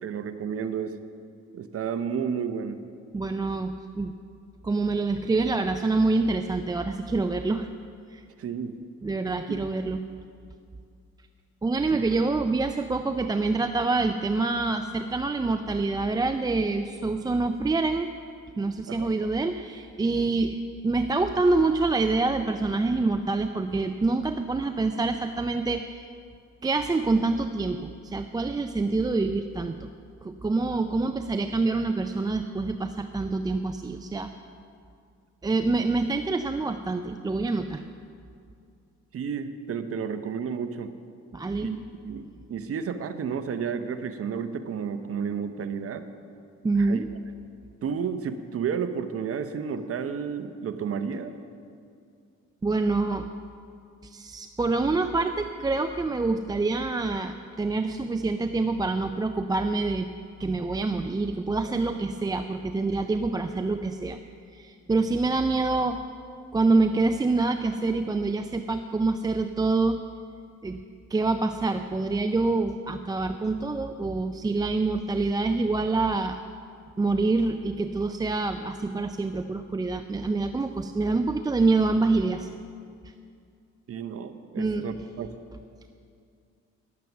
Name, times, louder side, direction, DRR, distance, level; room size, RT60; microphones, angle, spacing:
voice 1, 0.0-1.0 1.5-2.8 8.4-8.8 9.5-9.6 11.9-12.1 18.9-19.1 39.1-40.9 41.6-46.0 46.8-47.0 47.8-51.3 83.9-85.3, right 6 dB, 50° right, 10 dB, 0.7 m, -32 dB
voice 2, 3.1-4.1 4.6-7.7 8.1-8.2 9.0-10.0 11.6-18.1 18.6-26.1 26.6-29.9 30.2-34.3 35.4-37.8 41.3-41.7 46.6-47.1 52.6-53.3 54.0-60.1 60.4-64.2 64.5-66.0 66.5-70.0 70.6-70.8 71.1-76.4 77.0-82.5 84.6-84.9, right 3 dB, 15° right, 7 dB, 0.3 m, -26 dB
10.5 x 7.6 x 6.9 m, 2.4 s
cardioid pair, 90°, 30 cm